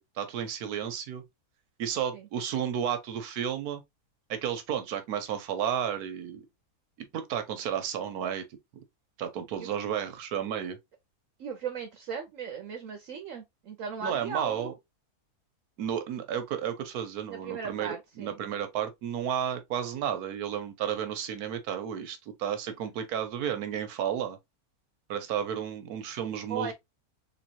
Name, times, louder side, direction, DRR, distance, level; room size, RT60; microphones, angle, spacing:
voice 1, 0.2-1.2 1.8-3.8 4.3-6.4 7.0-8.4 9.2-10.8 14.0-14.7 15.8-24.4 25.1-26.7, right 9 dB, 90° right, 1.3 m, -32 dB
voice 2, 11.4-14.7 17.3-18.4 26.5-26.7, right 6 dB, 65° right, 1.0 m, -37 dB
3.7 x 3.1 x 2.8 m
omnidirectional pair, 1.6 m